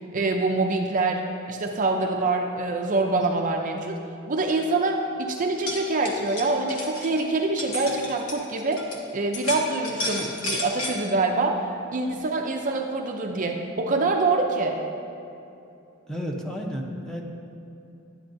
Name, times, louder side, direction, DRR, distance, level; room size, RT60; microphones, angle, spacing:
voice 1, 0.1-4.0 4.3-8.8 9.1-11.6 11.9-14.8, right 3 dB, 40° right, 2 dB, 0.5 m, -25 dB
sound 1, 5.5-9.0 9.3-11.0, left 2 dB, 70° left, 1.2 m, -32 dB
voice 2, 16.1-17.2, equal, 5° left, 0 dB, 0.7 m, -32 dB
10.5 x 8.7 x 2.6 m, 2.8 s
head